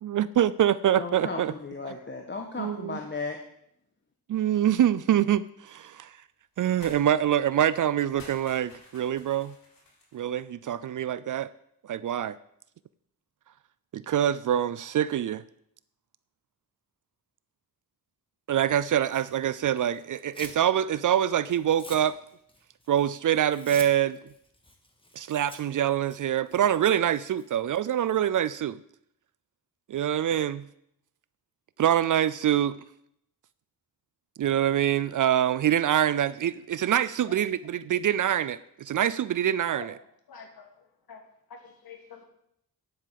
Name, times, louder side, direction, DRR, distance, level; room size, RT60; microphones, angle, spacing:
voice 1, 0.0-1.5 2.6-3.0 4.3-6.2 6.6-9.6 10.1-11.5 11.8-12.4 13.9-15.4 18.5-22.1 22.9-24.2 25.2-28.8 29.9-30.7 31.8-32.8 34.4-39.9, right 10 dB, 60° right, 17 dB, 0.5 m, -25 dB
voice 2, 1.0-3.4, left 4 dB, 30° left, 2 dB, 1.4 m, -35 dB
sound 1, 6.8-7.0 7.3-7.5 8.0-10.3, left 2 dB, 65° left, 4.9 m, -51 dB
Tearing, 19.0-20.6 21.0-27.5, left 1 dB, 15° left, 1.9 m, -48 dB
voice 3, 40.3-41.2 41.5-42.2, left 6 dB, 85° left, 3 dB, 2.6 m, -47 dB
10.0 x 8.5 x 7.5 m, 0.74 s
wide cardioid pair, 115°, 35 cm